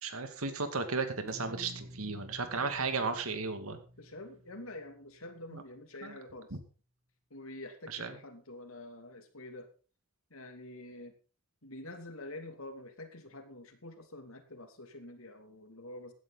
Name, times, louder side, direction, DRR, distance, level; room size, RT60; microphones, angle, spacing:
voice 1, 0.0-3.8 5.5-5.6 6.0-6.1 6.5-6.6 7.9-8.1, right 4 dB, 85° right, 8 dB, 2.4 m, -35 dB
sound 1, 1.3-5.5, equal, 45° right, 3.2 m, -51 dB
voice 2, 4.0-6.5 7.3-9.7 10.3-11.1 11.6-16.1, left 1 dB, 80° left, 6 dB, 2.7 m, -47 dB
15.5 x 11.0 x 4.1 m, 0.36 s
head